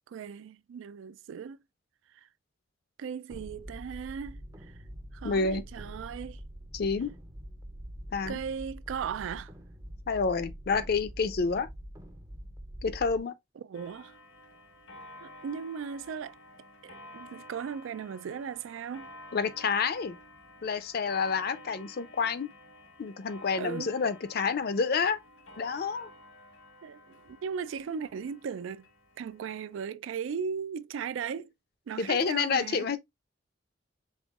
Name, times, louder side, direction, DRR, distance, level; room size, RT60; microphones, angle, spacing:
voice 1, 0.1-1.6 2.1-2.3 3.0-4.4 4.7-4.8 5.1-6.4 8.3-9.5 13.6-14.1 15.2-16.4 16.8-19.1 23.5-23.9 26.8-28.9 29.2-31.5 31.9-32.9, right 7 dB, 85° right, 0.3 m, -37 dB
sound 1, 3.3-13.2, equal, 20° right, 0.5 m, -45 dB
voice 2, 5.2-5.6 6.7-7.1 8.1-8.4 10.1-11.7 12.8-13.4 19.3-20.2 20.6-22.5 23.0-25.2 25.6-26.1 32.0-33.0, left 5 dB, 50° left, 0.5 m, -29 dB
Clock, 13.7-29.9, left 1 dB, 85° left, 1.2 m, -52 dB
5.4 x 3.4 x 2.4 m
head